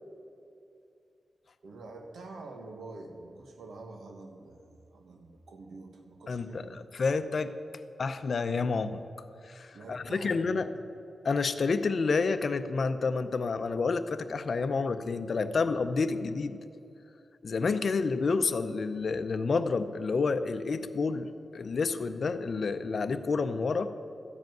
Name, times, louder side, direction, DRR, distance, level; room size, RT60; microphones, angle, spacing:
voice 1, 1.6-6.8 9.7-10.8, right 3 dB, 85° right, 4 dB, 1.3 m, -46 dB
voice 2, 6.3-7.6 8.0-9.0 9.5-10.7 11.2-16.6 17.4-21.3 21.5-23.9, left 4 dB, 65° left, 11 dB, 0.6 m, -29 dB
13.5 x 5.2 x 9.3 m, 2.6 s
cardioid pair, 60°, 0 cm